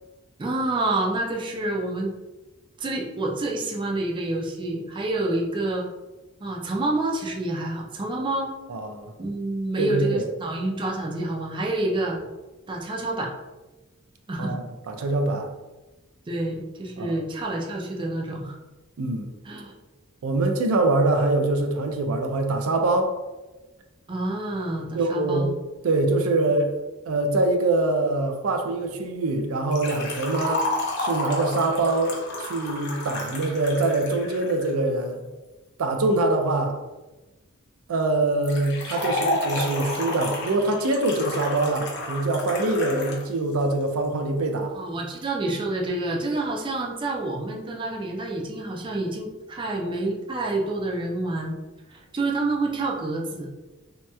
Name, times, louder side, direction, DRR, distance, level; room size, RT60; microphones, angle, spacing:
voice 1, 0.4-2.1 2.8-5.9 6.4-8.5 9.2-12.2 12.7-13.3 14.3-14.6 16.3-18.6 19.4-19.7 24.1-25.5 44.7-51.6 51.9-53.5, right 2 dB, 25° right, 0 dB, 0.4 m, -28 dB
voice 2, 8.7-9.1 9.8-10.3 14.4-14.6 14.9-15.5 17.0-17.2 19.0-19.3 20.2-23.1 24.9-25.6 25.8-26.8 27.1-30.6 31.0-32.2 32.5-35.2 35.8-36.7 37.9-44.7, right 2 dB, 85° right, 4 dB, 0.4 m, -24 dB
Liquid, 29.7-34.7 38.4-43.2 43.5-43.6 44.5-44.6, left 2 dB, 55° left, 0.7 m, -31 dB
3.1 x 2.9 x 2.2 m, 1.1 s
head